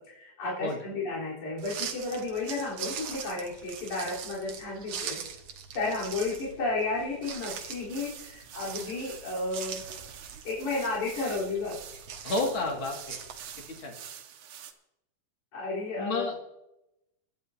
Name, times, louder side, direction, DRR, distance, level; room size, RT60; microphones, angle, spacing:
voice 1, 0.1-5.2 5.7-9.8 10.5-11.8 15.5-16.3, left 3 dB, 70° left, -7 dB, 5.3 m, -32 dB
sound 1, 1.6-13.8, right 7 dB, 60° right, 2.1 m, -42 dB
sound 2, 7.2-14.7, right 9 dB, 90° right, 2.6 m, -47 dB
voice 2, 12.2-13.2 13.6-14.0 16.0-16.4, left 2 dB, 40° left, 1 dB, 2.7 m, -31 dB
22.5 x 11.0 x 2.8 m, 0.87 s
omnidirectional pair, 3.6 m